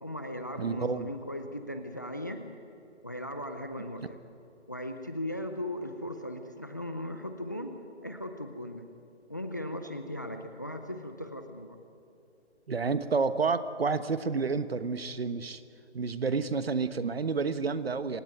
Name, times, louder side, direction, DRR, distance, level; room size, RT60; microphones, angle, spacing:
voice 1, 0.0-2.5 3.0-4.2 4.7-7.7 8.0-8.9 9.3-11.8, left 1 dB, 15° left, 7 dB, 0.6 m, -38 dB
voice 2, 0.6-1.1 12.7-15.6 15.9-18.2, right 4 dB, 60° right, 13 dB, 1.3 m, -29 dB
24.5 x 18.5 x 9.2 m, 2.7 s
figure-of-eight pair, 160°, 34 cm